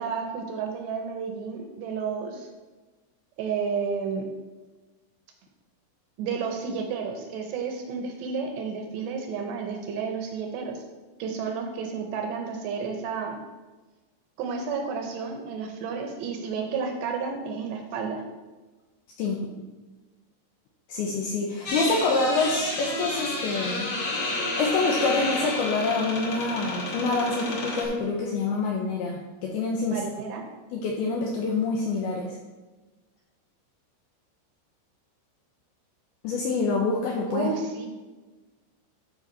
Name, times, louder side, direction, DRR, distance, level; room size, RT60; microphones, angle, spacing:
voice 1, 0.0-2.5 3.4-4.3 6.2-10.8 11.2-13.4 14.4-18.2 29.9-30.4 37.3-37.9, right 5 dB, 75° right, 3 dB, 2.7 m, -31 dB
voice 2, 20.9-23.9 24.6-30.0 30.7-32.3 36.2-37.5, left 3 dB, 85° left, -1 dB, 2.3 m, -26 dB
sound 1, 21.6-27.8, left 2 dB, 60° left, 1.3 m, -30 dB
12.0 x 5.0 x 4.0 m, 1.2 s
omnidirectional pair, 5.4 m